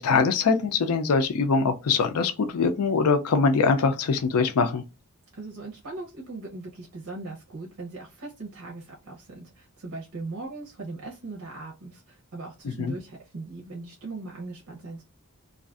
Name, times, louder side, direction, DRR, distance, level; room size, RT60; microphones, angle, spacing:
voice 1, 0.0-4.8 12.8-12.9, left 4 dB, 85° left, 0.4 m, -23 dB
voice 2, 5.3-15.0, right 3 dB, 80° right, 0.7 m, -39 dB
2.5 x 2.4 x 2.3 m
head